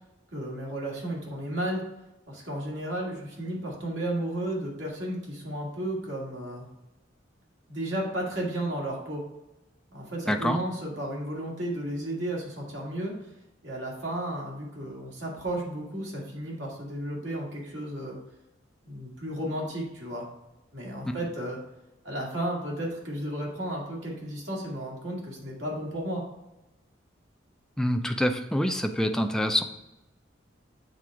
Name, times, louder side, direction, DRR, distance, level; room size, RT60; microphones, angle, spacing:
voice 1, 0.3-1.8 2.3-6.7 7.7-9.2 9.9-13.3 13.6-18.2 18.9-20.3 20.7-21.6 22.0-26.2, right 1 dB, 70° right, -3 dB, 2.1 m, -33 dB
voice 2, 10.3-10.6 21.1-21.2 27.8-29.6, equal, 5° left, 5 dB, 0.4 m, -26 dB
7.7 x 3.6 x 4.6 m, 0.91 s
head